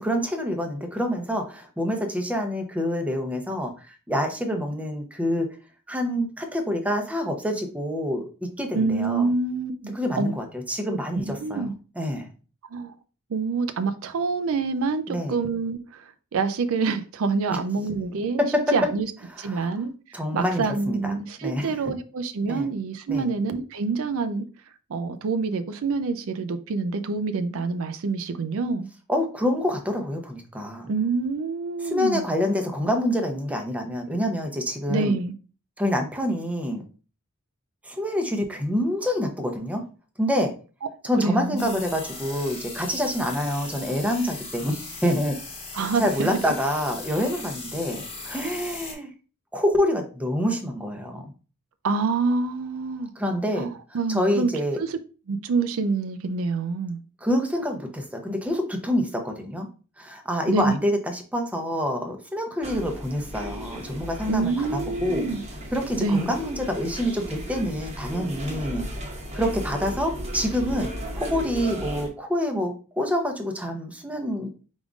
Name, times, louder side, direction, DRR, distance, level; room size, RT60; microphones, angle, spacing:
voice 1, 0.0-5.5 5.9-9.3 9.9-11.7 12.0-12.3 15.1-15.4 18.4-18.7 19.4-19.8 20.1-21.1 21.4-21.7 22.5-22.7 23.1-23.3 29.1-30.9 31.8-35.1 35.8-36.8 37.8-39.9 40.2-40.5 41.0-45.4 46.0-49.1 49.5-51.3 53.2-53.7 54.1-54.8 57.2-59.7 60.0-64.5 65.0-65.3 65.7-68.9 69.3-74.5, equal, 5° right, 0.7 m, -27 dB
voice 2, 8.7-10.3 11.4-11.7 12.7-12.9 13.3-18.4 18.7-19.1 19.4-19.9 20.3-24.5 24.9-28.9 30.9-32.2 34.9-35.3 41.2-41.8 45.7-46.4 51.8-53.1 53.5-54.5 54.8-55.0 55.3-57.0 60.5-60.7 64.3-65.4 65.9-66.4, right 4 dB, 65° right, 0.4 m, -26 dB
sound 1, 41.6-48.9, left 3 dB, 30° left, 1.1 m, -38 dB
sound 2, 62.6-72.1, equal, 30° right, 0.9 m, -35 dB
5.0 x 3.6 x 2.4 m
head